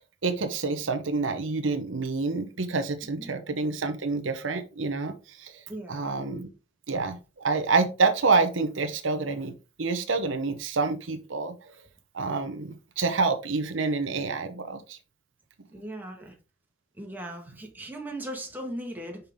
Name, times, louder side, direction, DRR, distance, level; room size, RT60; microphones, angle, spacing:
voice 1, 0.2-5.6 5.9-6.5 6.9-9.5 9.8-11.7 12.1-15.0, right 4 dB, 80° right, 0.9 m, -27 dB
voice 2, 5.7-6.0 15.7-16.3 17.0-19.2, right 1 dB, 10° right, 1.5 m, -38 dB
5.8 x 5.4 x 3.6 m
head